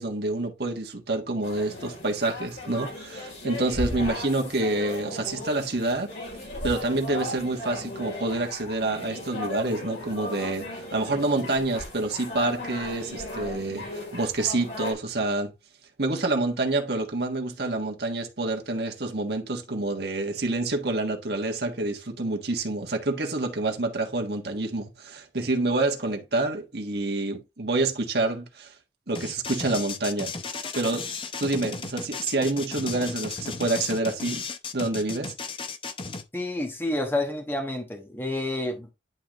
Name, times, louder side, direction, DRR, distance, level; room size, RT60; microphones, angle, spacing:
voice 1, 0.0-6.1 6.6-15.5 16.0-28.7 29.1-30.3 30.7-31.1 31.4-34.4 34.7-35.3, right 2 dB, 65° right, 1.5 m, -27 dB
sound 1, 1.4-14.9, left 1 dB, 75° left, 3.6 m, -36 dB
sound 2, 29.1-36.2, left 4 dB, 30° left, 0.7 m, -35 dB
voice 2, 36.3-38.9, left 1 dB, 10° left, 1.3 m, -29 dB
10.5 x 3.8 x 3.0 m
head